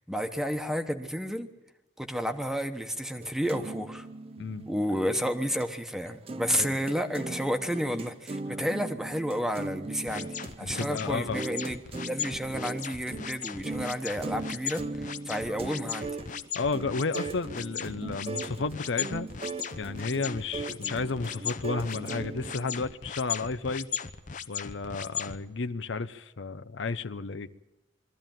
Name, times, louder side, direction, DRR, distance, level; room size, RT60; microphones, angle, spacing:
voice 1, 0.1-1.5 2.0-4.1 4.7-16.1, equal, 5° right, 7 dB, 1.1 m, -31 dB
sound 1, 3.2-5.7 6.1-22.9, right 3 dB, 30° right, 0.6 m, -39 dB
sound 2, 10.1-25.4, left 7 dB, 45° left, 0.8 m, -37 dB
voice 2, 10.6-11.4 15.5-15.6 16.5-19.3 19.8-23.9 24.5-27.5, left 4 dB, 75° left, 12 dB, 0.7 m, -32 dB
23.0 x 14.5 x 9.1 m, 1.0 s
head